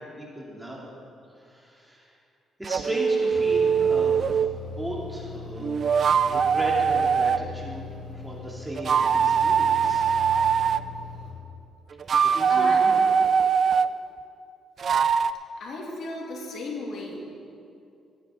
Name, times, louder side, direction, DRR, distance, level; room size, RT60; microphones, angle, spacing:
voice 1, 0.2-0.9 1.3-2.1 2.6-4.5 4.8-5.9 6.3-7.8 8.2-10.1 12.3-13.1, right 1 dB, 10° right, -3 dB, 2.6 m, -36 dB
sound 1, 2.6-4.5 5.6-7.4 8.8-10.8 11.9-13.9 14.8-15.3, right 6 dB, 50° right, 0.3 m, -22 dB
sound 2, 3.3-11.3, left 3 dB, 40° left, 3.0 m, -40 dB
voice 2, 12.5-12.9 15.6-17.3, left 2 dB, 65° left, -2 dB, 2.6 m, -35 dB
15.5 x 10.5 x 3.7 m, 2.5 s
cardioid pair, 90°, 0 cm